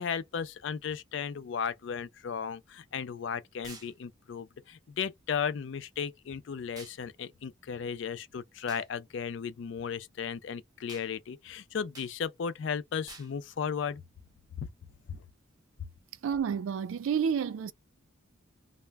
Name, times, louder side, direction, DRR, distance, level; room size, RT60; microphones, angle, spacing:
voice 1, 0.0-14.0 15.1-15.2, left 7 dB, 65° left, 0.4 m, -35 dB
sound 1, 3.6-3.9 6.8-7.0 8.7-8.9 10.9-11.1 11.9-12.1 13.1-13.3, right 4 dB, 20° right, 0.5 m, -48 dB
voice 2, 16.2-17.7, right 7 dB, 80° right, 0.3 m, -30 dB
2.1 x 2.1 x 3.3 m
head